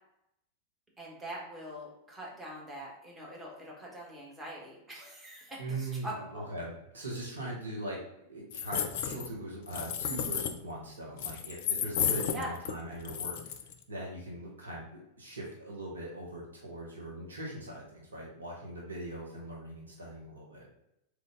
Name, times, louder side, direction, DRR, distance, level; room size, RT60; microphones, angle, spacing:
voice 1, 1.0-6.5 12.3-12.5, right 1 dB, 15° right, -3 dB, 1.3 m, -43 dB
voice 2, 5.6-8.0 8.3-13.5 13.9-20.7, right 1 dB, 75° right, -3 dB, 1.1 m, -41 dB
sound 1, 8.5-9.3 9.7-10.5 11.2-12.7 13.0-13.7, left 8 dB, 50° left, 0.4 m, -32 dB
3.8 x 3.4 x 3.6 m, 0.82 s
figure-of-eight pair, 90°, 0 cm